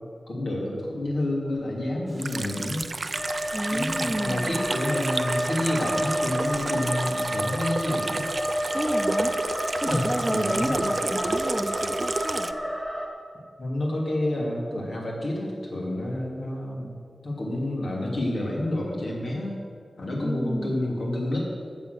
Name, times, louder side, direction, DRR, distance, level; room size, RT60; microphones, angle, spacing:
voice 1, 0.3-2.9 3.7-8.3 9.8-11.0 13.6-16.9 17.2-19.6 20.0-21.5, left 1 dB, 80° left, -3 dB, 3.1 m, -29 dB
Water tap faucet / Sink (filling or washing), 2.2-12.5, right 3 dB, 50° right, 0.4 m, -32 dB
sound 1, 3.1-13.1, equal, 20° left, 2.4 m, -30 dB
voice 2, 3.5-4.6 8.7-9.4 9.8-12.5 20.2-20.8, equal, ahead, 5 dB, 0.8 m, -31 dB
14.0 x 7.2 x 6.6 m, 2.2 s
wide cardioid pair, 85°, 0 cm